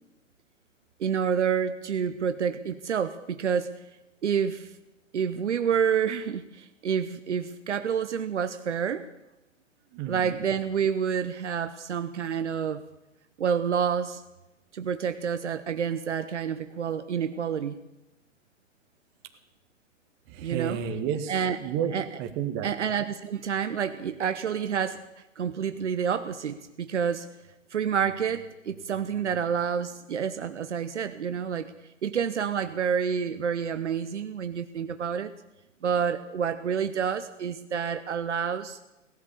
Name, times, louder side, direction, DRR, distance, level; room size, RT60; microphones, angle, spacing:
voice 1, 1.0-3.8 4.2-4.7 5.1-9.0 10.1-12.8 13.4-14.2 14.7-17.8 20.4-20.9 21.3-21.6 21.9-22.1 22.6-25.0 25.4-27.3 27.7-31.7 32.0-35.3 35.8-38.8, right 7 dB, 70° right, 10 dB, 0.9 m, -28 dB
voice 2, 9.9-10.4 20.3-21.9 22.2-22.7, right 8 dB, 30° right, 8 dB, 1.6 m, -31 dB
18.0 x 11.5 x 6.9 m, 0.97 s
figure-of-eight pair, 115°, 37 cm